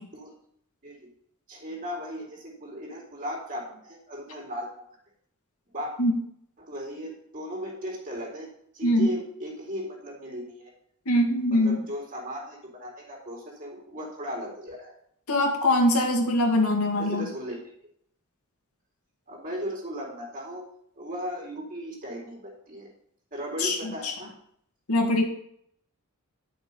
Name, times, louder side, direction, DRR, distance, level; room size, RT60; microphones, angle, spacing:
voice 1, 1.5-4.8 5.7-5.9 6.6-10.7 11.5-14.9 17.0-17.6 19.3-20.6 20.9-22.9 23.3-24.3, equal, 40° right, -2 dB, 4.0 m, -37 dB
voice 2, 11.1-11.8 15.3-17.3 23.6-23.8 24.0-24.1 24.9-25.2, left 1 dB, 80° left, 2 dB, 2.1 m, -22 dB
11.5 x 6.6 x 5.5 m, 0.69 s
head